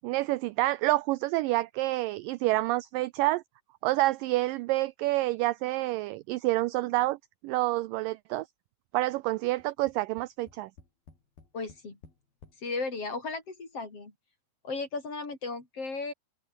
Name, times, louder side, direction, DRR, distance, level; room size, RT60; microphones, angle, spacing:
voice 1, 0.0-3.4 3.8-7.2 7.4-8.5 8.9-10.7, right 18 dB, 85° right, 1.9 m, -28 dB
Tap, 9.6-12.6 13.4-13.5 13.8-13.9, left 5 dB, 70° left, 8.1 m, -55 dB
voice 2, 11.5-12.0 12.6-14.1 14.6-16.1, left 3 dB, 35° left, 5.7 m, -35 dB
omnidirectional pair, 4.5 m